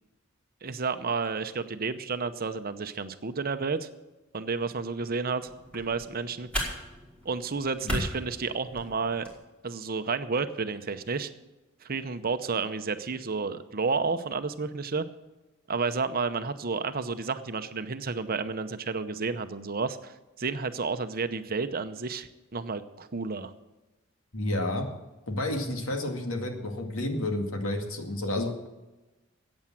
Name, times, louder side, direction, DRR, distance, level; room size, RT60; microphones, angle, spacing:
voice 1, 0.6-3.9 4.3-6.7 7.2-9.3 9.6-11.3 11.8-15.1 15.7-23.5, right 4 dB, 45° right, 10 dB, 0.8 m, -31 dB
sound 1, 5.4-9.4, equal, 5° left, 5.1 m, -37 dB
voice 2, 24.3-24.8 25.3-28.7, left 1 dB, 80° left, 4 dB, 2.3 m, -30 dB
14.5 x 8.8 x 7.6 m, 1.1 s
head